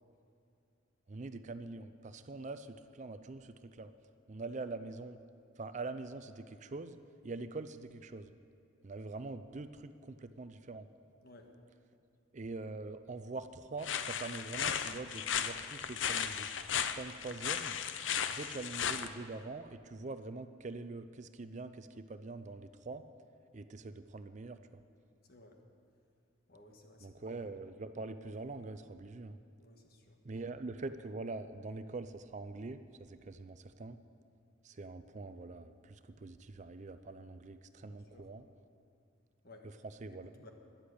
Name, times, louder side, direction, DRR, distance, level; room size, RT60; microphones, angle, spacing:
voice 1, 1.1-3.9 4.3-5.2 5.6-8.3 8.8-10.9 12.3-16.5 16.8-17.8 18.2-23.0 23.5-24.8 27.0-29.4 30.2-34.0 34.6-38.5 39.6-40.4, right 3 dB, 35° right, 11 dB, 0.5 m, -44 dB
sound 1, 13.8-19.1, left 8 dB, 70° left, 0.6 m, -36 dB
voice 2, 26.5-27.2 29.6-30.2 37.8-38.2 39.4-39.7 40.4-40.5, left 2 dB, 50° left, 3 dB, 1.6 m, -57 dB
13.0 x 10.5 x 8.4 m, 2.4 s
head